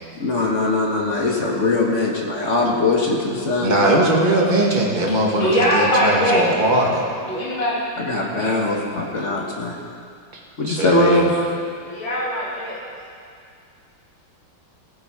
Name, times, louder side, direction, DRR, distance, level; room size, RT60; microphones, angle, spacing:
voice 1, 0.1-4.0 4.4-4.5 8.0-9.8 10.6-11.4, left 2 dB, 40° left, -1 dB, 1.4 m, -21 dB
voice 2, 3.6-7.0 10.6-11.3, right 1 dB, 25° right, -2 dB, 1.6 m, -20 dB
voice 3, 5.3-6.5 7.2-8.6 11.8-12.8, left 1 dB, 80° left, -7 dB, 3.5 m, -22 dB
17.0 x 8.8 x 4.8 m, 2.3 s
omnidirectional pair, 2.2 m